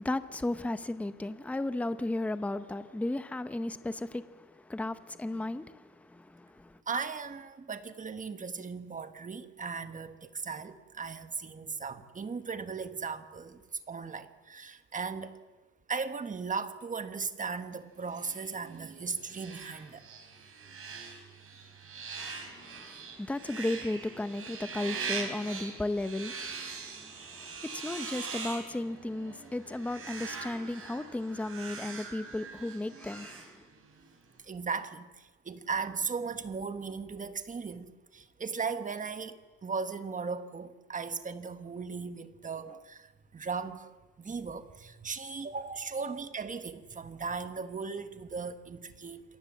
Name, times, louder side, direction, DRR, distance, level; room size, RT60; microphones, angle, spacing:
voice 1, 0.0-6.8 22.2-33.7, left 2 dB, 5° left, 0.7 m, -35 dB
voice 2, 6.9-13.6 13.9-15.4 15.9-20.0 34.4-43.9 44.2-49.2, right 5 dB, 20° right, 1.3 m, -37 dB
sound 1, 18.1-34.0, right 5 dB, 35° right, 4.6 m, -42 dB
28.0 x 23.0 x 7.5 m
cardioid pair, 170°, 37 cm